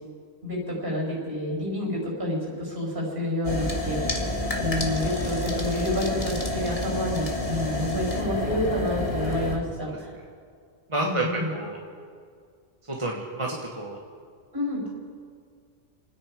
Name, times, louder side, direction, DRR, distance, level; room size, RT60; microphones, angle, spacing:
voice 1, 0.4-4.2 4.5-10.1 11.0-11.5 14.5-14.8, left 1 dB, 45° right, -2 dB, 5.7 m, -29 dB
sound 1, 3.4-9.6, left 1 dB, 30° left, 1.7 m, -29 dB
voice 2, 10.9-11.3 11.5-11.8 12.9-14.0, right 2 dB, 25° right, -2 dB, 1.4 m, -29 dB
28.5 x 10.0 x 5.1 m, 2.1 s
omnidirectional pair, 1.3 m